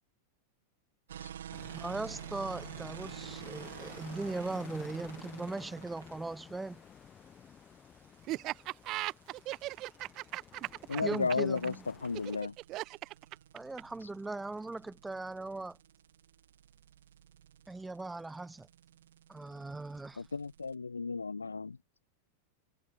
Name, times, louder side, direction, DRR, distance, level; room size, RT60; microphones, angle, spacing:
sound 1, 1.1-20.8, right 10 dB, 65° right, 1.4 m, -50 dB
sound 2, 1.5-12.4, left 8 dB, 25° left, 4.5 m, -54 dB
voice 1, 1.7-6.8 11.0-11.8 13.5-15.8 17.7-18.7 19.3-20.2, right 2 dB, 10° right, 0.6 m, -39 dB
Laughter, 8.3-14.0, right 17 dB, 35° right, 2.0 m, -38 dB
voice 2, 10.9-12.6 20.2-21.8, left 4 dB, 75° left, 2.0 m, -34 dB
figure-of-eight pair, 90°, 0 cm